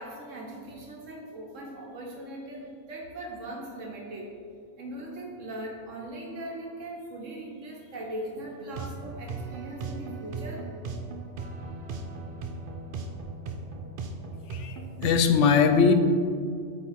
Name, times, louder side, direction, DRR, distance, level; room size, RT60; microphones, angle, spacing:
voice 1, 0.0-4.3 4.8-10.7, right 1 dB, 85° right, -1 dB, 1.6 m, -39 dB
sound 1, 8.6-15.2, right 3 dB, 55° right, 0.7 m, -37 dB
voice 2, 14.5-15.9, left 6 dB, 75° left, 7 dB, 0.9 m, -21 dB
8.2 x 3.7 x 4.3 m, 2.1 s
omnidirectional pair, 1.3 m